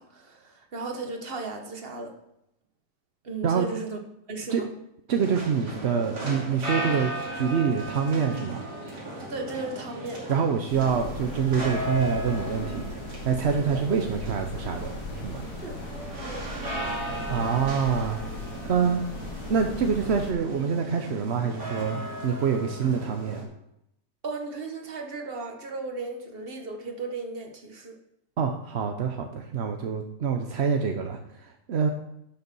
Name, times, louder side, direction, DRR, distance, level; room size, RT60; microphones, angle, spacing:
voice 1, 0.0-2.1 3.2-4.0 4.3-4.7 9.3-10.2 13.7-13.8 15.6-15.8 16.2-16.5 24.2-28.0, right 3 dB, 35° right, 4 dB, 1.4 m, -35 dB
voice 2, 5.1-8.6 10.3-12.9 13.2-14.9 15.2-15.4 17.3-18.2 18.7-19.0 19.5-23.4 28.4-31.9, right 6 dB, 55° right, 4 dB, 0.8 m, -26 dB
sound 1, 5.1-23.4, right 1 dB, 75° right, 3.5 m, -36 dB
sound 2, 10.7-20.3, left 2 dB, 65° left, 2.2 m, -38 dB
11.5 x 6.7 x 5.4 m, 0.81 s
omnidirectional pair, 1.8 m